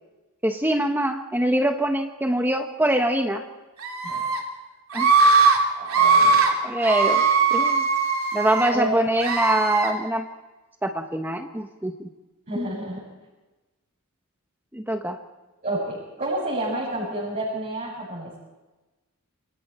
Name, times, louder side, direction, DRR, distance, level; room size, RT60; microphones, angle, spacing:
voice 1, 0.4-3.4 4.9-5.1 6.6-7.2 7.5-7.9 8.3-10.3 10.8-12.1 14.7-15.2, right 1 dB, 10° right, 5 dB, 1.1 m, -24 dB
Screaming, 3.8-4.4 4.9-5.6 5.9-6.5 6.8-8.7 9.2-9.9, right 4 dB, 65° right, 3.6 m, -19 dB
voice 2, 5.8-6.4 7.2-7.3 8.7-8.9 12.5-13.0 15.6-18.3, right 1 dB, 35° right, -6 dB, 7.4 m, -29 dB
28.5 x 24.5 x 4.4 m, 1.1 s
head